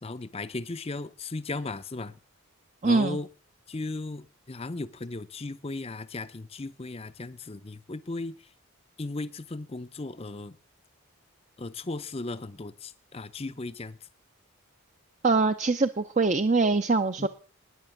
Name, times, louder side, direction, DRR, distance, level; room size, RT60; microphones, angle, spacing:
voice 1, 0.0-2.1 2.8-3.3 3.7-8.3 9.0-10.6 11.6-14.0 17.2-17.3, left 2 dB, 25° left, 0.6 m, -36 dB
voice 2, 2.8-3.2 15.2-17.3, right 3 dB, 35° right, 0.5 m, -23 dB
12.5 x 10.0 x 7.1 m
head